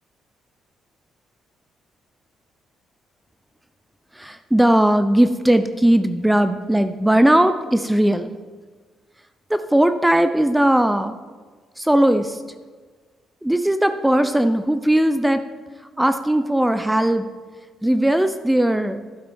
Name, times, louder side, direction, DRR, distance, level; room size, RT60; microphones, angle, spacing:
voice 1, 4.1-8.3 9.5-11.2 11.8-12.4 13.4-15.4 16.0-17.3 17.8-19.0, right 1 dB, 5° right, 10 dB, 0.5 m, -18 dB
12.0 x 7.4 x 4.3 m, 1.4 s
cardioid pair, 90°, 0 cm